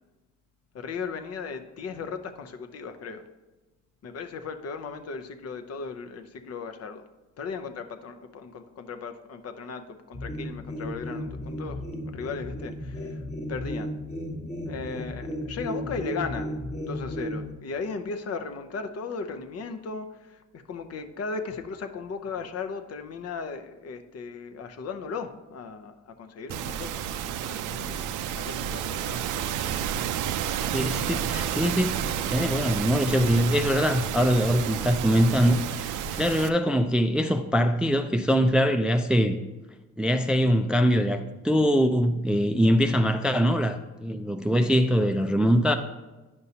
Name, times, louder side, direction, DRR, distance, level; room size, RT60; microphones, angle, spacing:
voice 1, 0.7-3.2 4.0-7.0 7.4-13.2 13.5-13.9 14.6-16.5 16.8-27.0 27.3-28.0 28.3-29.2, left 4 dB, 55° left, 0.7 m, -36 dB
sound 1, 10.1-17.5, left 1 dB, 20° left, 1.1 m, -34 dB
sound 2, 26.5-36.5, right 9 dB, 85° right, 0.5 m, -30 dB
voice 2, 30.7-31.9 32.3-39.4 40.0-45.7, equal, 5° right, 0.3 m, -23 dB
9.5 x 5.4 x 2.8 m
cardioid pair, 90°, 30 cm